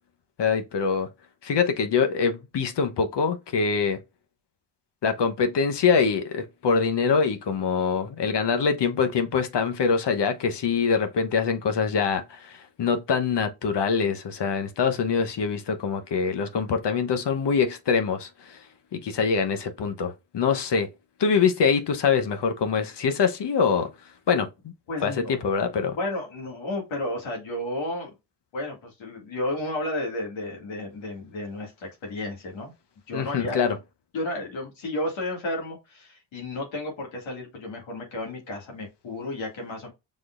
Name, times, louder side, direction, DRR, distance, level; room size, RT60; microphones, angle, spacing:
voice 1, 0.4-1.1 1.4-4.0 5.0-18.6 18.9-20.9 21.2-23.9 24.3-24.5 25.0-26.0 33.1-33.8, left 5 dB, 60° left, 1.1 m, -24 dB
voice 2, 24.9-25.5 25.8-28.1 28.5-32.7 33.1-33.6 34.1-39.9, left 1 dB, 85° left, 2.3 m, -32 dB
5.2 x 3.7 x 2.5 m
supercardioid pair, 55°, 46 cm